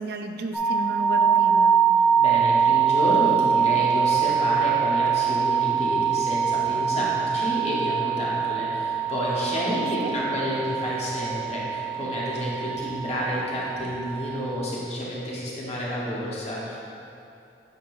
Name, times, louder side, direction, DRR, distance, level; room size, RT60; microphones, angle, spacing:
voice 1, 0.0-1.7 9.7-10.1, right 2 dB, 60° right, 5 dB, 0.5 m, -33 dB
sound 1, 0.5-14.6, right 7 dB, 5° left, 0.8 m, -24 dB
voice 2, 2.2-16.8, equal, 35° left, -6 dB, 1.2 m, -29 dB
9.3 x 5.4 x 2.6 m, 2.7 s
head